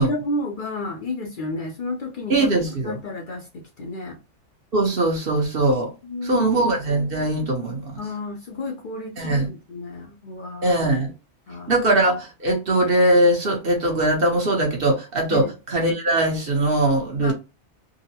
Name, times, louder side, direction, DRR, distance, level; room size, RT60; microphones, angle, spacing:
voice 1, 0.0-2.5 2.8-4.2 6.0-6.5 6.9-7.3 8.0-10.8 11.5-11.8 15.3-15.5 17.2-17.3, left 2 dB, 50° left, 0.7 m, -32 dB
voice 2, 2.3-3.0 4.7-5.9 6.2-8.0 9.2-9.5 10.6-11.1 11.7-17.3, right 1 dB, 55° right, 1.1 m, -21 dB
3.8 x 2.1 x 2.8 m
omnidirectional pair, 1.2 m